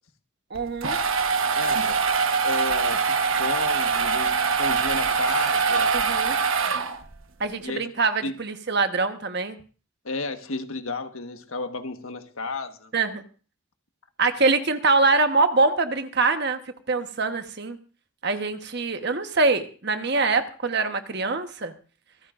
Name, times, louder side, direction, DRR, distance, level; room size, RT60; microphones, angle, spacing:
voice 1, 0.5-1.0 5.9-6.4 7.4-9.6 12.9-13.2 14.2-16.6 16.9-17.8 18.2-21.7, right 3 dB, 50° right, 1.3 m, -24 dB
sound 1, 0.6-7.2, right 5 dB, 70° right, 1.2 m, -23 dB
voice 2, 1.6-2.0 2.4-6.0 7.6-7.9 8.2-8.3 10.0-12.9, left 3 dB, 75° left, 1.5 m, -32 dB
25.5 x 13.5 x 2.6 m
head